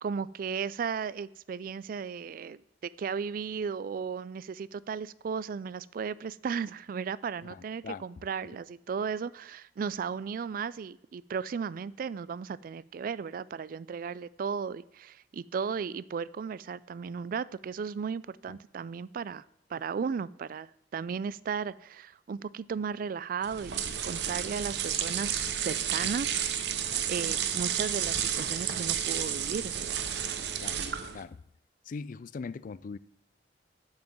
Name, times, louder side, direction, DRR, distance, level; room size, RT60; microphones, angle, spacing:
voice 1, 0.0-19.4 19.7-30.0, right 6 dB, 55° right, 0.3 m, -35 dB
voice 2, 7.5-8.0 18.5-18.6 26.9-27.1 30.6-30.8 31.1-31.4 31.9-33.0, left 5 dB, 50° left, 0.3 m, -41 dB
sound 1, 23.4-31.2, right 9 dB, 75° right, 0.8 m, -31 dB
8.8 x 5.9 x 7.7 m
head